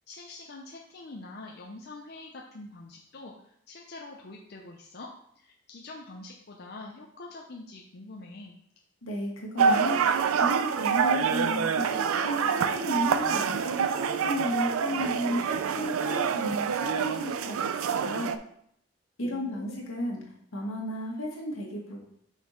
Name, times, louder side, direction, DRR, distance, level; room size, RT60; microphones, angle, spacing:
voice 1, 0.1-5.1 5.4-8.6 19.2-19.8, left 2 dB, 50° left, 0 dB, 0.6 m, -45 dB
voice 2, 9.0-10.0 10.4-18.4 19.2-20.2 20.5-22.0, equal, 80° left, -2 dB, 1.9 m, -33 dB
sound 1, 9.6-18.4, right 6 dB, 85° right, 0.4 m, -26 dB
5.9 x 4.3 x 4.3 m, 0.71 s
head